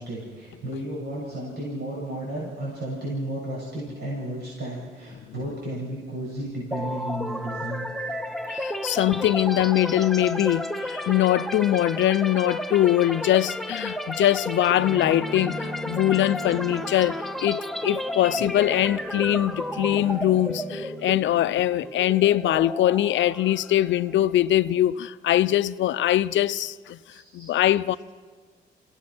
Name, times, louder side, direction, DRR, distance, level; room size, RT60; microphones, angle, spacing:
voice 1, 0.0-7.9 27.1-27.5, right 1 dB, 60° right, 7.6 m, -33 dB
sound 1, 6.7-24.5, left 1 dB, ahead, 0.8 m, -32 dB
voice 2, 8.5-27.0 27.3-28.0, left 13 dB, 70° left, 0.6 m, -22 dB
Bowed string instrument, 14.7-21.8, right 1 dB, 45° right, 2.9 m, -40 dB
25.5 x 17.5 x 6.1 m
cardioid pair, 90°, 20 cm